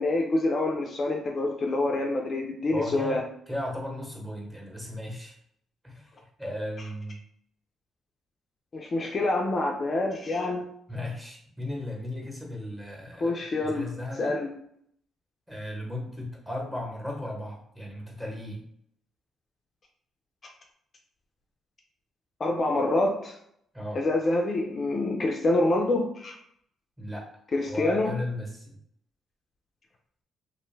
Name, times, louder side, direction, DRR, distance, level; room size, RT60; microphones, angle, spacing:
voice 1, 0.0-3.2 8.7-10.7 13.2-13.9 14.2-14.5 22.4-23.4 23.9-26.4 27.5-28.2, left 2 dB, 40° left, 1 dB, 0.4 m, -26 dB
voice 2, 2.7-5.4 5.8-7.2 10.9-14.4 15.5-18.6 23.7-24.0 27.0-27.3 27.7-28.8, left 1 dB, 10° right, -1 dB, 0.9 m, -36 dB
2.4 x 2.1 x 3.1 m, 0.70 s
cardioid pair, 90°, 0 cm